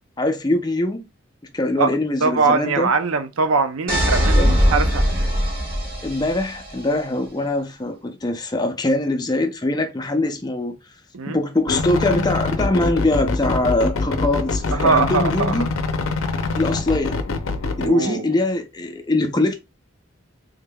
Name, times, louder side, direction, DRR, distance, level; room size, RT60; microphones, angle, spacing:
voice 1, 0.2-1.1 1.5-2.9 4.3-4.8 6.0-10.7 11.3-15.7 16.5-17.2 17.8-19.5, left 2 dB, 20° left, 0.4 m, -22 dB
voice 2, 2.2-5.0 11.1-11.4 14.7-15.6 17.8-18.2, right 4 dB, 85° right, 0.5 m, -21 dB
sound 1, 3.9-6.7, equal, 45° right, 1.3 m, -20 dB
sound 2, 11.7-17.9, left 3 dB, 80° left, 0.6 m, -24 dB
3.4 x 3.4 x 2.2 m
head